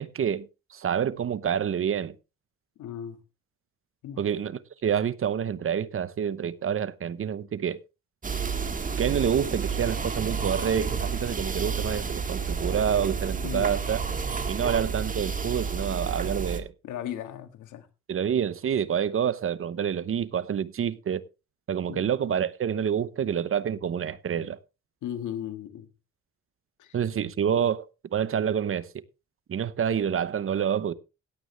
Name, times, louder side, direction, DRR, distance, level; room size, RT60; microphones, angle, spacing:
voice 1, 0.0-2.1 4.2-7.8 9.0-14.0 14.5-16.7 18.1-21.2 21.7-24.6 26.9-27.8 28.1-28.9 29.5-30.9, right 8 dB, 45° right, 0.9 m, -27 dB
voice 2, 2.8-3.2 4.0-4.2 13.4-13.7 16.8-17.9 21.9-22.0 25.0-25.9 26.8-27.0, left 10 dB, 80° left, 1.7 m, -36 dB
sound 1, 8.2-16.6, right 5 dB, 25° right, 1.7 m, -30 dB
17.0 x 8.9 x 3.2 m
cardioid pair, 90°, 30 cm